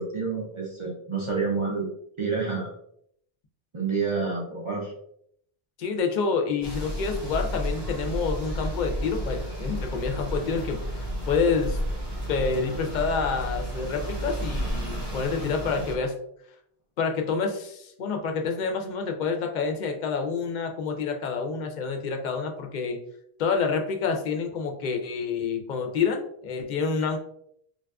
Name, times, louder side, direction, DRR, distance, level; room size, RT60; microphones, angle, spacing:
voice 1, 0.0-1.9 2.2-2.7 3.7-4.9, right 4 dB, 40° right, -4 dB, 0.5 m, -28 dB
voice 2, 5.8-11.8 12.3-16.2 17.0-23.0 23.4-27.2, left 5 dB, 55° left, 4 dB, 0.6 m, -28 dB
sound 1, 6.6-16.0, equal, 80° right, 1.2 m, -32 dB
3.8 x 2.4 x 2.2 m, 0.70 s
omnidirectional pair, 1.0 m